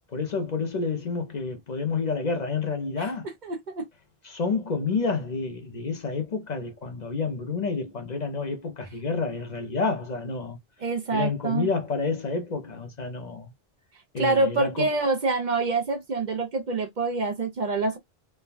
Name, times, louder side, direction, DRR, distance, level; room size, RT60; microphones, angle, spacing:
voice 1, 0.1-3.3 4.2-10.6 11.1-13.5 14.1-14.9, left 4 dB, 50° left, 0.7 m, -29 dB
voice 2, 3.4-3.9 10.8-11.7 14.2-18.0, right 3 dB, 55° right, 0.7 m, -26 dB
3.3 x 2.1 x 2.4 m
omnidirectional pair, 1.0 m